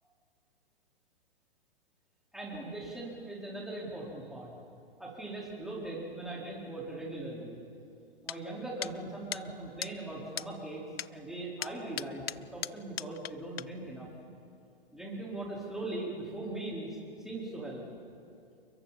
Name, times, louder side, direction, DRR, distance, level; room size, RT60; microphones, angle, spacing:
voice 1, 2.3-4.5 5.0-7.6 8.2-10.8 11.1-14.1 14.9-17.8, right 2 dB, ahead, -5 dB, 4.6 m, -40 dB
sound 1, 8.3-8.4 8.8-8.9 9.3-9.4 9.8-9.9 10.4-10.5 11.0-11.1 11.6-13.3 13.6-13.7, left 10 dB, 75° left, 0.5 m, -37 dB
29.0 x 23.5 x 4.3 m, 2.5 s
hypercardioid pair, 130°, 30 cm